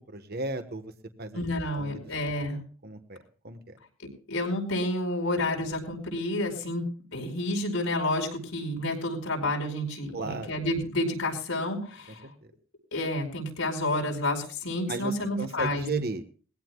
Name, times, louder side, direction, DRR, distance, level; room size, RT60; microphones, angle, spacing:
voice 1, 0.1-0.8 1.2-1.4 1.7-2.0 2.5-3.2 3.4-3.7 10.1-10.5 12.2-12.3 14.9-16.2, right 2 dB, 50° right, 8 dB, 1.3 m, -35 dB
voice 2, 1.3-2.6 4.3-6.8 7.1-12.2 12.9-16.0, left 1 dB, 85° left, 2 dB, 5.2 m, -30 dB
22.0 x 16.0 x 2.3 m, 0.40 s
head